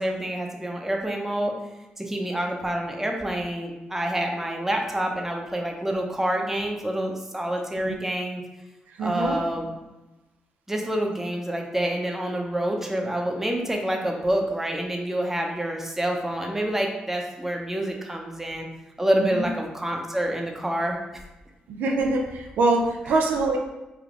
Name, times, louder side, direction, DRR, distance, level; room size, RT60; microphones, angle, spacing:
voice 1, 0.0-1.5 2.0-8.4 9.0-9.7 10.7-18.7 19.0-21.2, right 1 dB, 10° right, 1 dB, 0.7 m, -27 dB
voice 2, 8.9-9.4 19.3-19.5 21.7-23.6, right 2 dB, 75° right, 1 dB, 0.5 m, -24 dB
3.5 x 2.2 x 3.7 m, 1.0 s
supercardioid pair, 50°, 3 cm